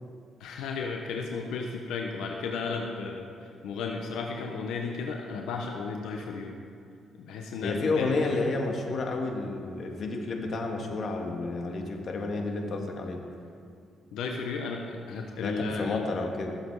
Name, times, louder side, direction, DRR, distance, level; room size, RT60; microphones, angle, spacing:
voice 1, 0.4-6.6 7.2-8.3 14.1-16.1, left 4 dB, 85° left, 2 dB, 1.1 m, -34 dB
voice 2, 7.6-13.2 15.4-16.5, left 3 dB, 50° left, 2 dB, 1.9 m, -30 dB
19.5 x 7.7 x 4.9 m, 2.3 s
cardioid pair, 90°, 0 cm